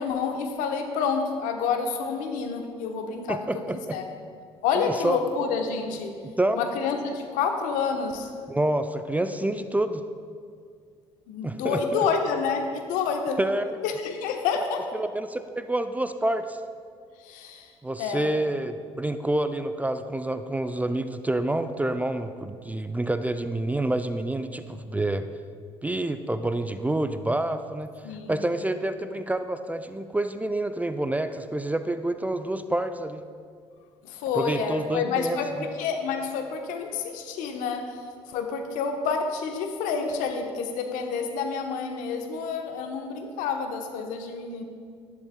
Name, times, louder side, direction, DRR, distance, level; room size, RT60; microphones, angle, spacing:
voice 1, 0.0-3.6 3.9-4.0 4.6-6.1 6.6-8.3 11.3-13.4 13.8-14.8 17.2-17.7 18.0-18.3 28.0-28.4 34.0-37.9 38.3-44.6, left 5 dB, 65° left, 5 dB, 0.9 m, -28 dB
voice 2, 3.3-4.0 4.8-5.2 6.4-6.6 8.5-10.0 11.4-12.0 13.4-13.8 14.9-16.6 17.8-25.3 25.8-27.9 28.3-33.2 34.3-35.7, right 1 dB, 10° right, 9 dB, 0.4 m, -28 dB
11.5 x 10.5 x 2.2 m, 2.2 s
hypercardioid pair, 55°, 15 cm